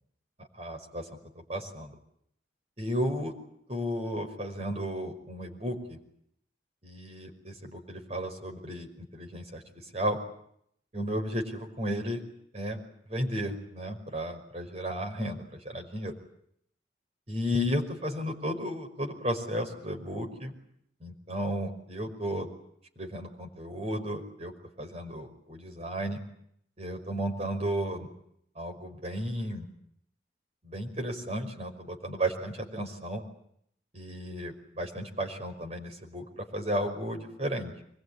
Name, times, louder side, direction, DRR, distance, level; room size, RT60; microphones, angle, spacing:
voice 1, 0.5-1.1 1.4-1.9 2.8-3.3 3.7-6.0 6.8-9.6 9.9-10.2 10.9-12.2 12.5-12.8 13.1-16.2 17.3-20.5 21.0-22.5 23.0-26.2 26.8-28.1 28.6-29.7 30.6-33.2 33.9-37.7, equal, 35° right, 3 dB, 5.4 m, -34 dB
25.0 x 21.5 x 9.9 m, 0.71 s
head